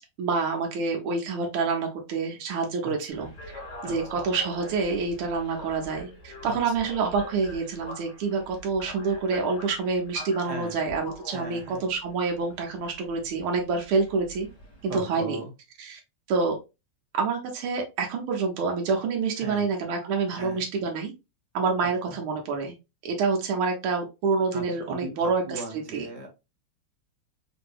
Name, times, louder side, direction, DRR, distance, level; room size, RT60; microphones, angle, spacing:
voice 1, 0.2-3.3 3.8-14.5 14.8-15.4 15.8-16.0 16.3-16.6 17.1-21.1 21.5-22.7 23.0-25.6 25.9-26.1, right 4 dB, 90° right, 1 dB, 1.6 m, -27 dB
voice 2, 2.8-3.3 3.8-4.2 6.4-6.7 10.5-10.8 11.3-11.8 14.9-15.5 19.4-19.7 20.3-20.6 22.1-22.2 24.5-26.3, right 2 dB, 70° right, 0 dB, 0.3 m, -38 dB
sound 1, 3.1-15.0, left 1 dB, 35° left, 1.5 m, -44 dB
3.6 x 2.6 x 2.3 m, 0.26 s
omnidirectional pair, 2.3 m